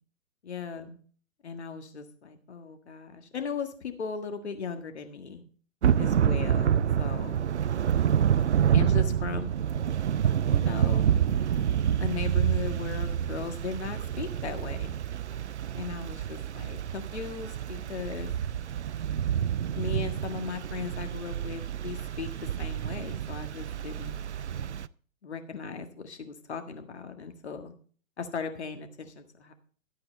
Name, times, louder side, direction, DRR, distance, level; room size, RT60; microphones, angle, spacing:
voice 1, 0.4-1.0 1.4-5.4 6.0-7.4 8.7-9.5 10.5-11.1 12.0-14.9 15.7-18.3 19.7-22.3 22.6-24.2 25.2-27.7 28.2-29.5, left 5 dB, 55° left, 7 dB, 1.7 m, -37 dB
Thunder / Rain, 5.8-24.9, right 9 dB, 60° right, 0.5 m, -28 dB
12.5 x 8.6 x 4.2 m, 0.43 s
figure-of-eight pair, 130°, 40 cm